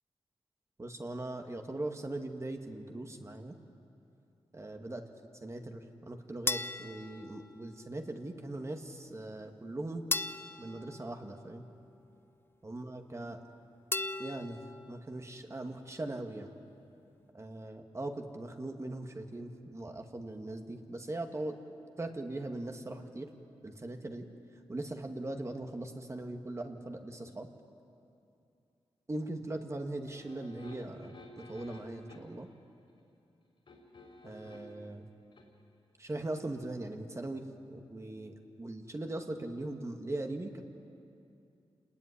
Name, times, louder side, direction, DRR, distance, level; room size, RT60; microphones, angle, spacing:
voice 1, 0.8-3.6 4.5-5.0 5.4-10.0 10.6-11.7 12.6-13.4 14.2-14.6 14.9-16.5 17.3-21.6 22.0-23.3 23.6-24.3 24.7-27.5 29.1-32.5 34.2-35.1 36.0-40.6, right 2 dB, 30° right, 4 dB, 2.0 m, -40 dB
sound 1, 6.5-8.0 10.1-11.9 13.9-15.0, left 3 dB, 20° left, 0.6 m, -38 dB
sound 2, 30.1-32.5 33.7-34.8 35.3-35.5, left 1 dB, 55° left, 4.0 m, -53 dB
28.5 x 20.0 x 10.0 m, 2.7 s
wide cardioid pair, 115°, 10 cm